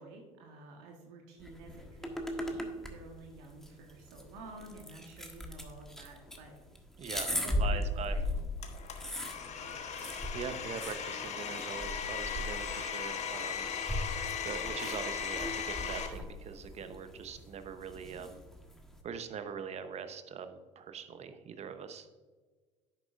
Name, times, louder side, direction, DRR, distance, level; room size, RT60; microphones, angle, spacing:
voice 1, 0.0-6.6 7.3-8.4 9.6-9.8, right 3 dB, 70° right, 1 dB, 1.4 m, -50 dB
sound 1, 1.4-19.0, left 1 dB, 5° left, 1.4 m, -39 dB
voice 2, 7.0-7.3 7.6-8.1 10.3-13.7 14.0-18.4 19.0-22.1, right 6 dB, 40° right, 9 dB, 1.0 m, -42 dB
Domestic sounds home sounds, 8.6-16.1, left 7 dB, 45° left, 1.3 m, -38 dB
10.5 x 8.0 x 2.6 m, 1.4 s
hypercardioid pair, 65°, 17 cm